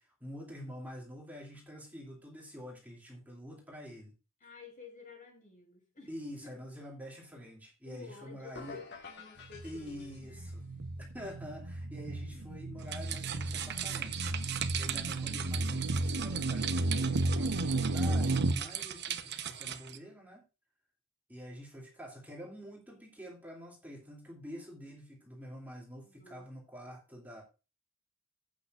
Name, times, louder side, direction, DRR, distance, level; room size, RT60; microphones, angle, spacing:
voice 1, 0.0-4.1 6.1-8.8 9.6-10.6 11.1-14.2 14.7-20.4 21.3-27.4, equal, 10° right, -3 dB, 2.9 m, -47 dB
voice 2, 4.4-6.1 6.4-6.5 7.8-10.6 12.3-12.5 26.0-26.5, left 5 dB, 40° left, 2 dB, 5.0 m, -52 dB
sound 1, 8.5-10.6, left 4 dB, 60° left, 2.0 m, -49 dB
sound 2, 9.4-18.5, right 2 dB, 80° right, 0.8 m, -33 dB
sound 3, 12.8-20.0, right 10 dB, 55° right, 1.0 m, -39 dB
14.0 x 8.9 x 2.6 m, 0.31 s
head